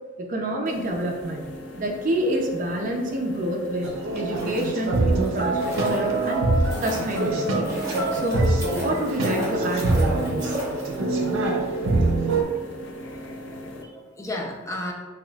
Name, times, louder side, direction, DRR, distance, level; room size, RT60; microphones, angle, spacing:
voice 1, 0.2-1.4 1.8-6.5 6.8-7.7 8.1-10.6, right 1 dB, 40° right, 0 dB, 0.6 m, -28 dB
sound 1, 0.7-13.8, left 1 dB, 70° left, 0.5 m, -39 dB
sound 2, 3.8-12.4, right 2 dB, 85° right, 0.6 m, -24 dB
sound 3, 4.2-11.3 11.6-11.7, equal, 15° right, 1.1 m, -37 dB
voice 2, 13.0-14.9, left 1 dB, 15° left, -1 dB, 0.5 m, -35 dB
5.7 x 2.5 x 2.3 m, 1.3 s
head